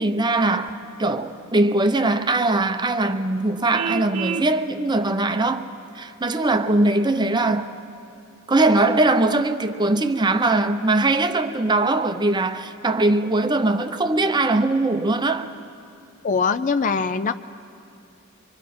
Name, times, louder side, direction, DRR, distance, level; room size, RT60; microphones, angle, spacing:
voice 1, 0.0-5.7 5.9-7.7 8.5-15.5, right 2 dB, 20° right, 0.6 m, -21 dB
Vehicle horn car horn honking, 3.7-4.5, right 6 dB, 65° right, 0.5 m, -28 dB
voice 2, 16.2-17.4, left 5 dB, 35° left, 0.4 m, -22 dB
25.0 x 24.5 x 4.3 m
head